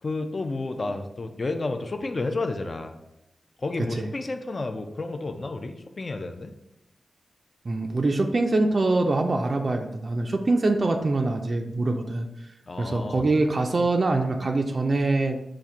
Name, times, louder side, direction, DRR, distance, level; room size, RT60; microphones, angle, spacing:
voice 1, 0.0-3.0 3.6-6.5 12.7-13.3, left 3 dB, 40° left, 6 dB, 0.4 m, -31 dB
voice 2, 7.7-12.3 12.8-15.4, right 2 dB, 45° right, 3 dB, 0.3 m, -24 dB
4.2 x 2.5 x 4.7 m, 0.85 s
wide cardioid pair, 80°, 0 cm